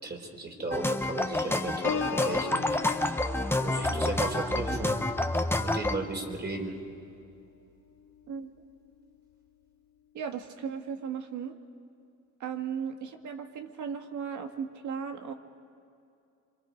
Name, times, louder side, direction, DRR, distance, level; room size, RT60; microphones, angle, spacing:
voice 1, 0.0-2.6 3.0-3.2 3.6-5.0 5.6-6.7, right 2 dB, 35° right, 2 dB, 4.2 m, -35 dB
sound 1, 0.7-6.0, left 2 dB, 10° left, 1.1 m, -28 dB
Piano, 1.8-7.5 7.9-8.3, left 7 dB, 65° left, 1.4 m, -40 dB
voice 2, 10.1-11.6 12.4-15.3, right 7 dB, 75° right, 5 dB, 1.8 m, -36 dB
27.0 x 24.5 x 5.3 m, 2.6 s
cardioid pair, 90°, 30 cm